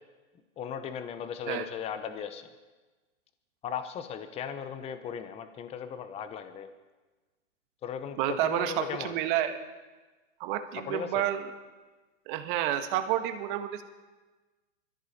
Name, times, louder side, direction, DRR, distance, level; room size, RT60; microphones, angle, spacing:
voice 1, 0.6-2.5 3.6-6.7 7.8-9.1 10.8-11.3, left 7 dB, 15° left, 10 dB, 0.9 m, -37 dB
voice 2, 8.2-9.6 10.4-11.5 12.3-13.8, right 12 dB, 40° right, 8 dB, 1.4 m, -29 dB
23.0 x 14.0 x 4.3 m, 1.2 s
hypercardioid pair, 135°, 40 cm